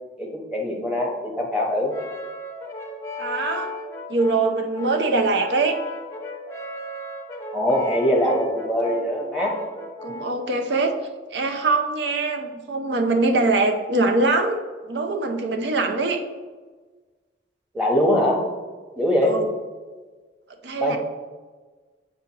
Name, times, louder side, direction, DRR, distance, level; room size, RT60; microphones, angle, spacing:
voice 1, 0.2-1.9 7.5-9.6 17.7-18.4 19.0-19.4 20.8-21.0, left 1 dB, 5° right, -1 dB, 0.9 m, -22 dB
Brass instrument, 1.9-10.5, left 1 dB, 15° left, 0.6 m, -35 dB
voice 2, 3.2-3.7 4.1-5.8 8.1-8.4 10.0-10.9 11.3-16.2 19.2-19.5 20.6-21.0, right 3 dB, 75° right, 4 dB, 0.6 m, -23 dB
7.7 x 4.8 x 2.9 m, 1.4 s
head